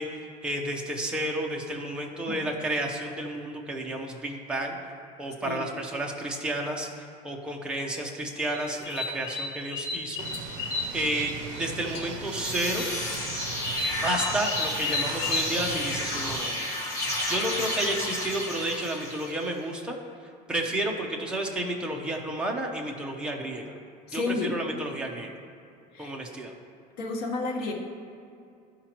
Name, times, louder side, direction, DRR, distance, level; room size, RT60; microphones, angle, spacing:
voice 1, 0.0-4.8 5.2-10.6 10.9-12.8 14.0-20.0 20.5-23.7 24.1-25.3 26.0-26.5, right 1 dB, 5° right, 0 dB, 0.6 m, -31 dB
sound 1, 8.4-11.7 11.9-12.5 12.8-15.5, left 3 dB, 85° left, 1.4 m, -32 dB
sound 2, 10.2-16.4, right 6 dB, 70° right, 0.5 m, -39 dB
sound 3, 12.1-19.5, left 1 dB, 20° left, 1.6 m, -32 dB
voice 2, 24.1-24.6 25.9-26.1 27.0-27.7, left 3 dB, 65° left, -1 dB, 1.3 m, -31 dB
12.5 x 4.9 x 2.9 m, 2.5 s
cardioid pair, 175°, 16 cm